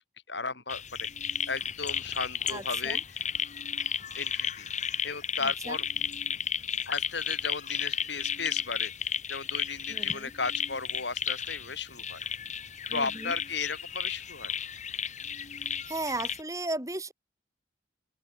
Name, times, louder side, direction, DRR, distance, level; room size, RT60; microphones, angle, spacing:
voice 1, 0.3-3.2 4.1-4.7 5.0-5.8 6.9-8.9 9.3-12.2 12.9-14.5, left 4 dB, 65° left, 5.7 m, -35 dB
sound 1, 0.7-16.4, left 7 dB, 40° left, 3.6 m, -34 dB
voice 2, 2.5-3.0 5.4-5.8 9.9-10.3 12.9-13.3 15.9-17.1, right 2 dB, 15° right, 4.3 m, -35 dB
open air
head